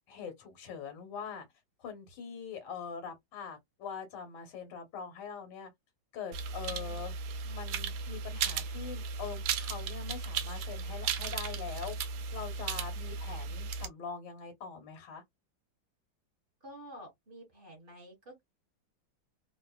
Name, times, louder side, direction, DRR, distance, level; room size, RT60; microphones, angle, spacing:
voice 1, 0.1-1.5 1.8-5.7 6.1-7.1 7.4-11.9 12.3-15.2, left 6 dB, 70° left, 1.6 m, -43 dB
sound 1, 6.3-13.9, right 5 dB, 75° right, 1.0 m, -36 dB
voice 2, 6.6-7.0 16.6-18.4, equal, 30° right, 1.6 m, -50 dB
3.1 x 2.4 x 2.3 m
omnidirectional pair, 2.1 m